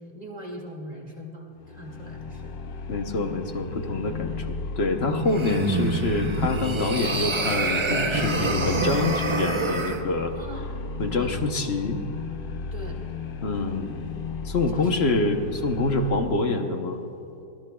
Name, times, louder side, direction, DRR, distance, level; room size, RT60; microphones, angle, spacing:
voice 1, 0.0-2.6 10.4-10.7 11.2-11.3 12.7-13.0 14.7-15.4, equal, 25° right, -1 dB, 2.2 m, -41 dB
sound 1, 1.6-16.4, left 4 dB, 85° left, 0.4 m, -35 dB
voice 2, 2.9-4.5 4.8-10.4 11.0-12.0 13.4-14.1 14.4-17.0, left 3 dB, 45° left, 5 dB, 1.0 m, -26 dB
sound 2, 5.3-10.0, right 3 dB, 50° right, 0.3 m, -26 dB
23.0 x 19.0 x 2.3 m, 2.9 s
omnidirectional pair, 1.8 m